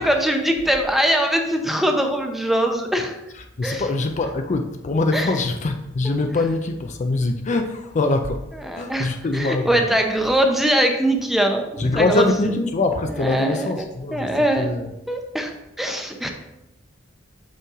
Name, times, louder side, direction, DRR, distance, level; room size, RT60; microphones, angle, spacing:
voice 1, 0.0-3.1 3.6-3.8 5.1-5.3 6.0-6.2 8.7-11.6 11.9-12.5 13.2-13.8 14.1-14.7 15.1-15.5 15.8-16.3, right 1 dB, ahead, 3 dB, 0.7 m, -22 dB
voice 2, 3.3-8.5 8.7-10.0 11.8-14.9, left 2 dB, 35° left, 6 dB, 0.4 m, -23 dB
6.2 x 5.5 x 3.6 m, 0.90 s
head